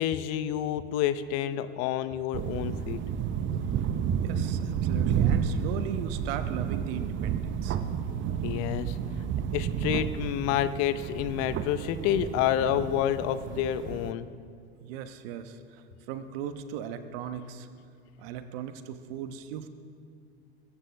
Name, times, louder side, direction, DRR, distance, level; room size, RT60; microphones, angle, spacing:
voice 1, 0.0-3.0 8.4-9.0 9.5-14.3, left 10 dB, 50° left, 13 dB, 0.8 m, -29 dB
sound 1, 2.3-14.1, right 8 dB, 35° right, 1.0 m, -31 dB
voice 2, 4.2-7.8 14.8-17.7 18.2-19.7, right 9 dB, 60° right, 9 dB, 1.2 m, -38 dB
21.5 x 16.0 x 3.5 m, 2.3 s
hypercardioid pair, 90°, 33 cm